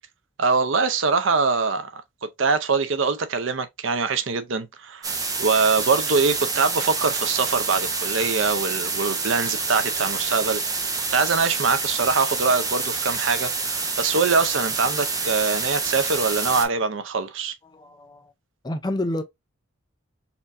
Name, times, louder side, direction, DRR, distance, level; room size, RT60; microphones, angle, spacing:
voice 1, 0.4-5.1 5.4-17.5, right 4 dB, 75° right, 0.6 m, -23 dB
sound 1, 5.0-16.7, right 4 dB, 20° right, 0.8 m, -27 dB
voice 2, 17.6-18.3 18.6-19.2, left 1 dB, 20° left, 0.5 m, -29 dB
4.3 x 2.7 x 2.5 m
head